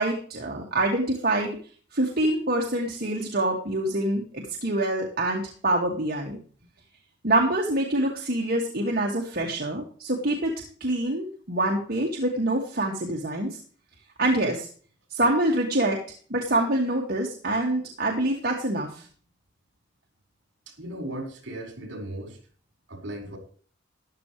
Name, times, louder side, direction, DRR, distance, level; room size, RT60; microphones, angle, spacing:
voice 1, 0.0-1.6 1.9-6.4 7.2-10.5 10.8-13.6 14.2-14.7 15.1-16.0 16.3-19.1, right 1 dB, 50° right, 0 dB, 2.2 m, -25 dB
voice 2, 20.7-22.4 22.9-23.4, right 1 dB, 70° right, 3 dB, 5.0 m, -37 dB
14.0 x 12.0 x 3.3 m, 0.43 s
head